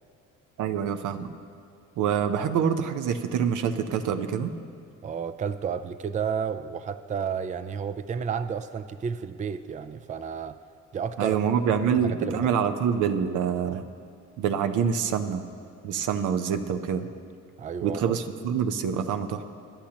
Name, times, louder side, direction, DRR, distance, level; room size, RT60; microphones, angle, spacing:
voice 1, 0.6-1.3 2.0-4.5 11.2-13.8 14.4-15.4 15.8-17.1 17.8-19.4, right 7 dB, 85° right, 8 dB, 0.7 m, -26 dB
voice 2, 5.0-10.6 10.9-11.4 11.9-12.5 17.6-18.1, right 7 dB, 25° right, 11 dB, 0.4 m, -31 dB
22.0 x 10.0 x 2.9 m, 2.3 s
cardioid pair, 90°, 30 cm